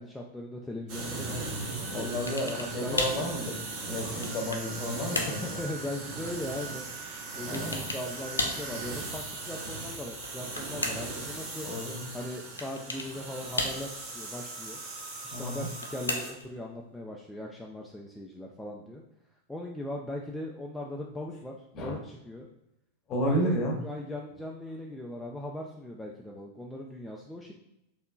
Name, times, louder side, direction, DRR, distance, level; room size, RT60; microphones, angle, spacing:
voice 1, 0.0-1.5 1.8-2.1 2.4-3.3 5.1-6.9 7.4-11.7 12.1-14.8 15.2-19.0 19.5-22.5 23.3-23.6 23.8-27.5, left 1 dB, 5° left, -2 dB, 0.4 m, -39 dB
sound 1, 0.9-16.3, right 3 dB, 45° right, 1.3 m, -38 dB
voice 2, 1.9-3.6 3.9-5.6 7.5-7.9 11.6-12.1 15.3-15.7 21.7-22.0 23.1-23.8, equal, 30° left, 2 dB, 0.9 m, -32 dB
sound 2, 2.3-2.7 3.0-3.3 3.9-4.7 5.1-5.4 7.5-8.1 8.4-8.7 10.1-11.2 12.6-13.1 13.6-14.1 15.5-16.5, left 2 dB, 80° left, 0.5 m, -33 dB
4.4 x 2.8 x 2.3 m, 0.84 s
figure-of-eight pair, 90°, 0 cm